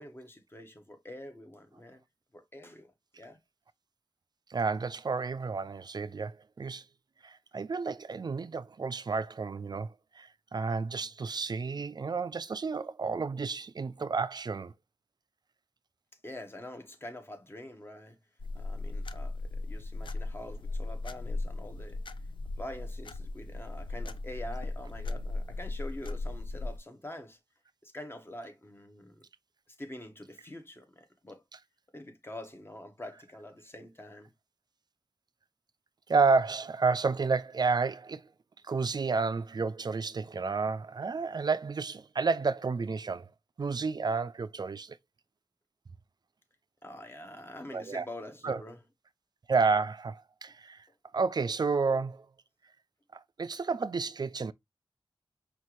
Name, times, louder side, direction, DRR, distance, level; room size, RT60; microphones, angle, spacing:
voice 1, 0.0-2.0 2.3-2.9 3.2-3.4 16.2-18.2 18.5-22.0 22.6-27.4 27.8-29.2 29.7-31.4 31.9-34.3 46.8-48.8, left 1 dB, 25° left, 1.0 m, -45 dB
voice 2, 4.5-6.8 7.2-14.7 36.1-38.2 38.6-43.3 43.6-45.0 47.7-48.1 48.4-48.6 49.5-50.9 51.1-52.3 53.1-54.5, right 4 dB, 45° right, 0.3 m, -31 dB
sound 1, 18.4-26.8, left 2 dB, 60° left, 0.4 m, -37 dB
5.4 x 2.5 x 2.9 m
wide cardioid pair, 85°, 9 cm